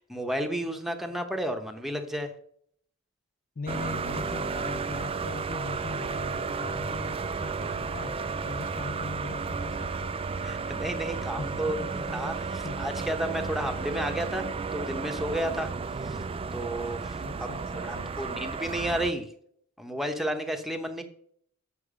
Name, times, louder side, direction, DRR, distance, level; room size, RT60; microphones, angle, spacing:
voice 1, 0.0-2.3 10.4-12.3 12.8-14.5 14.7-15.7 16.0-16.2 16.5-17.5 17.7-19.3 19.8-21.0, right 1 dB, ahead, 0.9 m, -32 dB
voice 2, 3.6-10.1 11.4-12.9 13.8-13.9 17.2-18.4, left 4 dB, 40° left, 0.5 m, -40 dB
sound 1, 3.7-19.1, right 4 dB, 25° right, 0.4 m, -33 dB
8.5 x 6.0 x 4.9 m
head